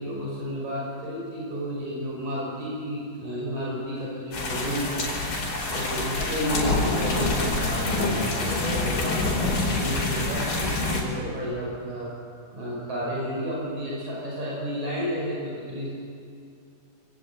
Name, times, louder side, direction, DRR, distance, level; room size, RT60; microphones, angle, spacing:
voice 1, 0.0-5.0 5.7-12.1 12.5-15.9, equal, 55° right, -5 dB, 7.1 m, -32 dB
sound 1, 4.3-11.0, left 2 dB, 75° left, 6.5 m, -26 dB
28.5 x 18.5 x 8.3 m, 2.4 s
omnidirectional pair, 4.1 m